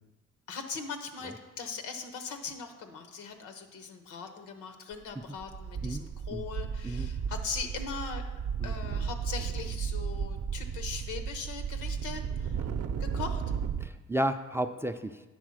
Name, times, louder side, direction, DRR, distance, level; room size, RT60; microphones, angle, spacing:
voice 1, 0.5-8.2 8.6-12.6 13.0-13.4, left 5 dB, 90° left, 7 dB, 1.0 m, -40 dB
sound 1, 4.9-5.1 5.4-13.9, right 7 dB, 55° right, 0.6 m, -34 dB
voice 2, 13.8-15.2, right 1 dB, 10° right, 8 dB, 0.3 m, -32 dB
9.0 x 3.9 x 6.3 m, 1.1 s
cardioid pair, 90°, 30 cm